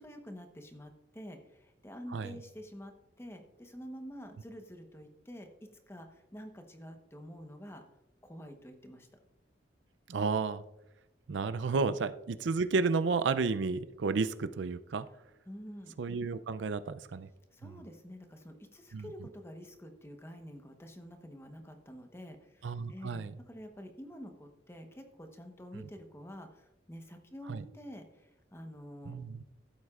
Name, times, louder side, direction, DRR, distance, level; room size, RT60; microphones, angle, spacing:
voice 1, 0.0-7.8 8.2-9.1 15.5-15.9 17.5-29.2, equal, 15° left, 5 dB, 1.0 m, -48 dB
voice 2, 10.1-10.6 11.3-15.1 16.0-17.3 18.9-19.1 22.6-23.3 27.5-27.6 29.1-29.4, right 4 dB, 80° right, 13 dB, 0.4 m, -32 dB
15.0 x 8.0 x 2.4 m, 0.93 s
head